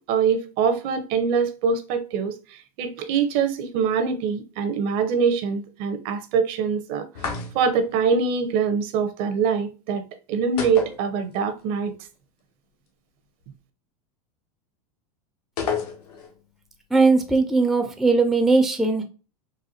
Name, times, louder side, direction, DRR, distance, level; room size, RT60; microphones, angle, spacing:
voice 1, 0.1-7.1 7.5-10.0 10.3-11.9, right 6 dB, 50° right, 0.6 m, -24 dB
sound 1, 7.1-7.9 10.6-11.6 11.9-12.0 15.6-16.4, left 6 dB, 85° left, 0.9 m, -30 dB
voice 2, 16.9-19.0, right 3 dB, ahead, 0.4 m, -19 dB
4.1 x 2.2 x 2.5 m
hypercardioid pair, 110°, 19 cm